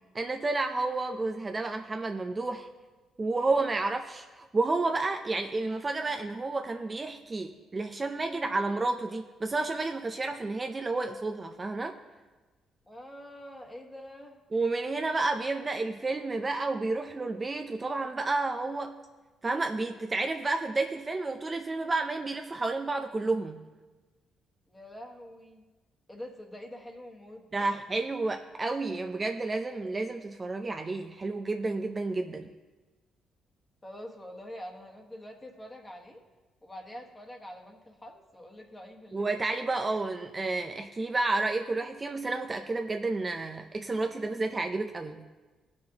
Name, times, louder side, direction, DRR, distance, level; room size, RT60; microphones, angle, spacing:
voice 1, 0.1-2.7 3.2-12.0 14.5-19.1 19.4-23.6 27.5-32.5 39.1-45.2, right 3 dB, 25° right, 5 dB, 0.5 m, -31 dB
voice 2, 12.9-14.4 24.7-25.6 26.1-27.7 33.8-36.2 36.6-39.4, equal, 15° left, 1 dB, 1.4 m, -45 dB
18.0 x 6.2 x 2.9 m, 1.2 s
cardioid pair, 90°, 0 cm